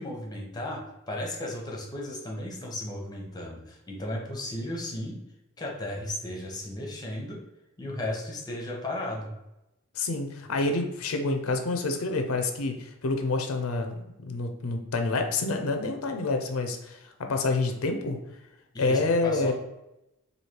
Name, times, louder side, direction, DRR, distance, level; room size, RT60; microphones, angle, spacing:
voice 1, 0.0-5.2 5.6-7.4 7.8-9.3 18.7-19.5, left 1 dB, 20° left, -1 dB, 0.8 m, -35 dB
voice 2, 9.9-18.2 18.8-19.5, left 3 dB, 75° left, 5 dB, 0.5 m, -28 dB
3.2 x 2.7 x 4.3 m, 0.91 s
head